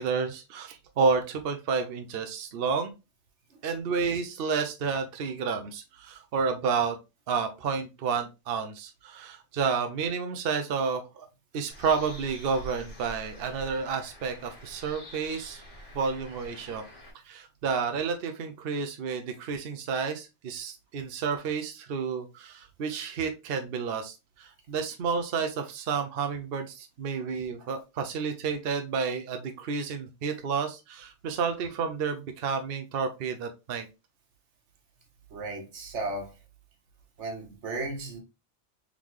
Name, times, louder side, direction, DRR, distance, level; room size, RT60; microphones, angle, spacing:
voice 1, 0.0-2.9 3.6-7.0 7.3-11.3 11.5-15.6 15.9-16.8 17.3-33.9, right 5 dB, 60° right, 0.8 m, -30 dB
Bird, 11.7-17.1, equal, 80° left, 1.8 m, -46 dB
voice 2, 35.3-36.3 37.2-38.2, right 2 dB, 75° right, 1.4 m, -35 dB
3.7 x 3.6 x 3.0 m
omnidirectional pair, 1.2 m